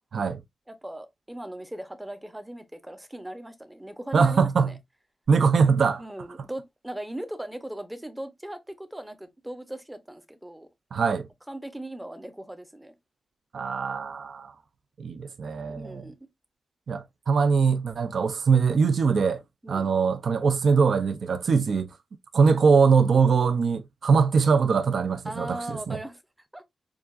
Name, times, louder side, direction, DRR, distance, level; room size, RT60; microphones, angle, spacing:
voice 1, 0.7-4.7 6.0-10.7 11.5-12.9 15.7-16.3 19.6-19.9 25.3-26.2 26.5-26.6, right 1 dB, 5° right, 0.7 m, -38 dB
voice 2, 4.1-4.7 5.3-6.0 10.9-11.3 13.5-14.5 15.0-16.0 16.9-19.4 19.7-21.9 22.3-26.0, right 5 dB, 55° right, 0.5 m, -22 dB
7.1 x 2.5 x 2.4 m
wide cardioid pair, 170°, 0 cm